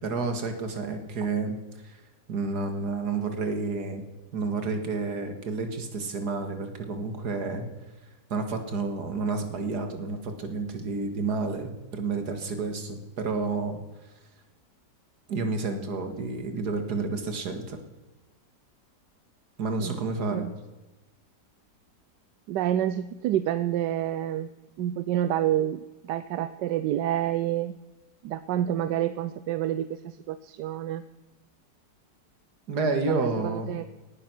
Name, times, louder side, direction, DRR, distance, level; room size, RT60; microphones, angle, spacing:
voice 1, 0.0-1.6 1.8-2.0 2.3-4.0 4.3-7.7 8.3-13.8 15.3-17.8 19.6-20.5 32.7-33.8, right 3 dB, 70° right, 6 dB, 2.3 m, -30 dB
voice 2, 22.5-24.5 24.8-27.8 28.2-31.0 33.1-33.9, right 11 dB, 85° right, 13 dB, 1.3 m, -28 dB
18.0 x 10.0 x 6.1 m, 1.1 s
omnidirectional pair, 1.8 m